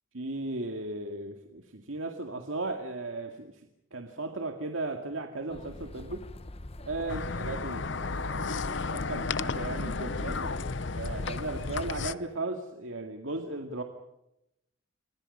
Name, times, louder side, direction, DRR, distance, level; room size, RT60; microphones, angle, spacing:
voice 1, 0.1-3.6 3.9-6.3 6.8-13.8, right 2 dB, 75° right, 4 dB, 2.2 m, -36 dB
sound 1, 5.5-12.0, left 1 dB, 30° left, 0.8 m, -43 dB
sound 2, 7.1-12.1, left 4 dB, 60° left, 0.8 m, -33 dB
28.0 x 25.0 x 5.5 m, 0.87 s
head